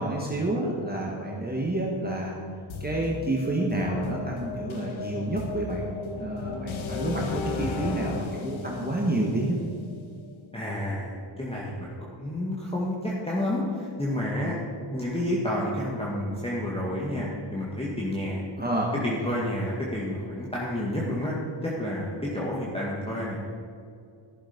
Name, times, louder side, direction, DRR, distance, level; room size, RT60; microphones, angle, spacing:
voice 1, 0.0-2.3 2.8-5.8 6.2-9.6 18.6-18.9, right 1 dB, 20° right, -2 dB, 1.7 m, -29 dB
sound 1, 2.7-10.6, left 4 dB, 75° left, 1.2 m, -35 dB
voice 2, 10.5-14.6 14.9-18.4 19.0-21.4 21.6-23.4, left 1 dB, 10° left, -5 dB, 1.9 m, -30 dB
14.0 x 7.2 x 5.3 m, 2.3 s
cardioid pair, 80°, 47 cm